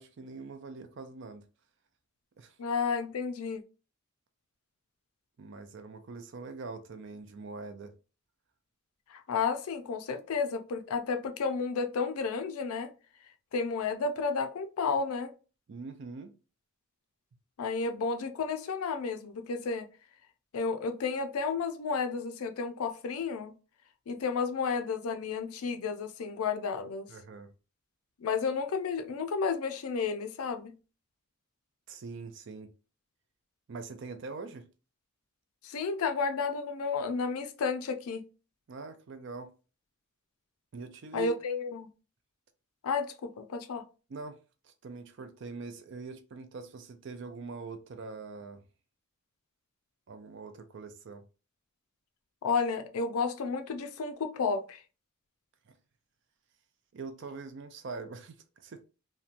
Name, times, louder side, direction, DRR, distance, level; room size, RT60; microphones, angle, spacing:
voice 1, 0.0-1.4 2.4-2.6 5.4-7.9 15.7-16.3 27.1-27.5 31.9-32.7 33.7-34.7 38.7-39.5 40.7-41.3 44.1-44.4 44.6-48.6 50.1-51.2 55.7-55.8 56.9-58.9, right 4 dB, 55° right, 0.4 m, -43 dB
voice 2, 2.6-3.6 9.1-12.9 13.5-15.3 17.6-19.9 20.5-23.5 24.1-27.1 28.2-30.7 35.6-38.2 41.1-41.9 42.8-43.8 52.4-54.8, left 5 dB, 80° left, 0.4 m, -32 dB
2.8 x 2.2 x 2.4 m
head